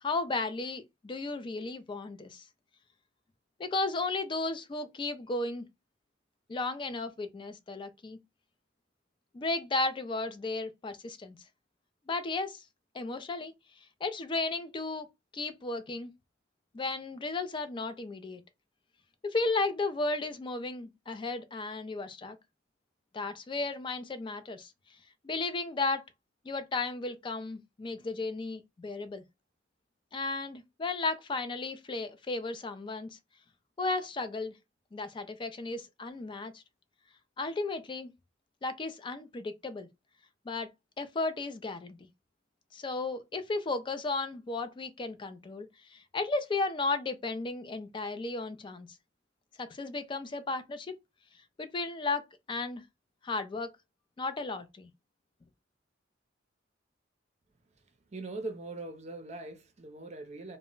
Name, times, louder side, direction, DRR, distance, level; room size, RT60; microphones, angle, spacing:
voice 1, 0.0-2.4 3.6-5.7 6.5-8.2 9.3-11.4 12.1-12.6 12.9-13.5 14.0-15.1 15.3-16.1 16.7-18.4 19.2-22.4 23.1-24.7 25.2-26.0 26.4-29.2 30.1-33.1 33.8-34.5 34.9-36.6 37.4-38.1 38.6-39.9 40.5-40.7 41.0-42.1 42.7-48.9 49.6-51.0 51.6-52.8 53.2-53.7 54.2-54.9, left 3 dB, 25° left, 0.3 m, -34 dB
voice 2, 58.1-60.6, right 2 dB, 35° right, 0.5 m, -41 dB
2.1 x 2.0 x 3.7 m
head